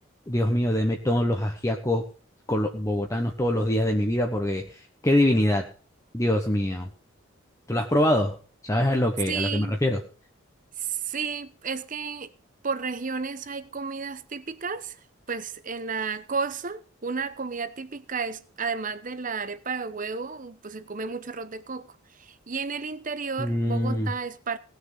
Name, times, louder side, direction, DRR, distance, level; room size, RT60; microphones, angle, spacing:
voice 1, 0.3-2.0 2.5-4.6 5.0-5.7 6.1-6.9 7.7-8.3 8.7-10.0 23.4-24.1, left 1 dB, 15° left, 1.1 m, -24 dB
voice 2, 9.3-9.8 10.8-12.3 12.6-14.9 15.3-21.9 22.5-24.6, right 5 dB, 40° right, 0.9 m, -32 dB
18.5 x 6.6 x 6.7 m
head